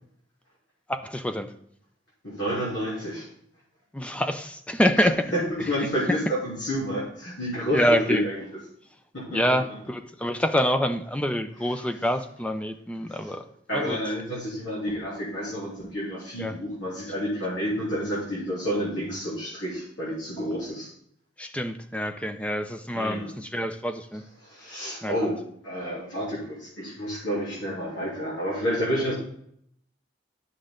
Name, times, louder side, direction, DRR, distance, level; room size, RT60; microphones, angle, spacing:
voice 1, 0.9-1.5 3.9-5.3 5.6-5.7 6.1-6.2 7.5-8.2 9.3-13.4 13.7-14.0 16.4-16.6 21.4-24.2 24.7-25.2, equal, 5° left, 8 dB, 0.5 m, -26 dB
voice 2, 2.2-3.3 5.3-5.4 5.7-8.4 9.1-9.6 13.1-13.3 13.7-20.9 22.9-23.3 24.4-25.4 25.6-29.1, equal, 85° left, -7 dB, 3.2 m, -29 dB
9.1 x 6.5 x 3.8 m, 0.67 s
head